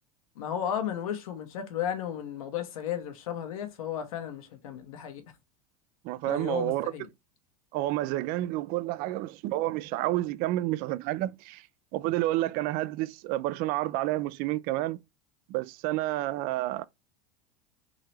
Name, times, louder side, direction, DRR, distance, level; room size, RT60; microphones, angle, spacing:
voice 1, 0.4-5.2 6.2-7.1, left 9 dB, 80° left, 1.1 m, -34 dB
voice 2, 6.0-6.9 7.7-11.6 11.9-15.0 15.5-16.8, right 16 dB, 55° right, 0.4 m, -29 dB
3.8 x 2.9 x 3.2 m
hypercardioid pair, 100°, 18 cm